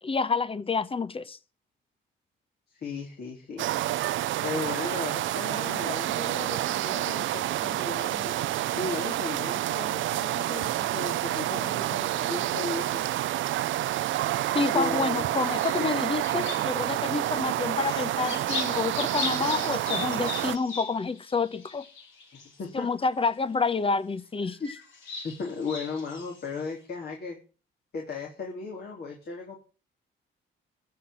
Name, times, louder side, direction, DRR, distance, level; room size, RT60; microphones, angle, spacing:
voice 1, 0.0-1.4 14.5-21.9 22.7-24.8, left 4 dB, 30° left, 1.0 m, -28 dB
voice 2, 2.8-3.7 4.4-8.3 8.8-13.0 14.7-15.3 22.3-22.9 25.2-27.4 27.9-29.6, left 4 dB, 55° left, 3.5 m, -36 dB
sound 1, 3.6-20.6, right 14 dB, 75° right, 0.6 m, -29 dB
sound 2, 12.4-13.4 14.0-14.7 15.1-17.1 17.4-22.6 23.2-23.3 24.4-26.6, left 4 dB, 75° left, 4.7 m, -39 dB
14.5 x 5.8 x 8.6 m
cardioid pair, 90°, 20 cm